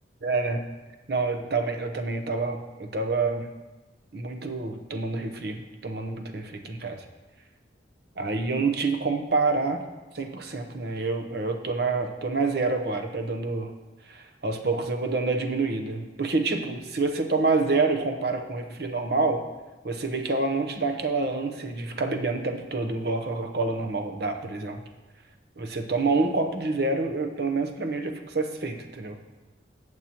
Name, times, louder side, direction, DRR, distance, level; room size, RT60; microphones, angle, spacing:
voice 1, 0.2-0.6 1.1-3.5 4.1-7.0 8.2-9.8 10.1-13.7 14.1-19.4 19.8-24.8 25.6-29.2, right 3 dB, 60° right, 5 dB, 0.9 m, -27 dB
14.5 x 7.9 x 3.0 m, 1.2 s
head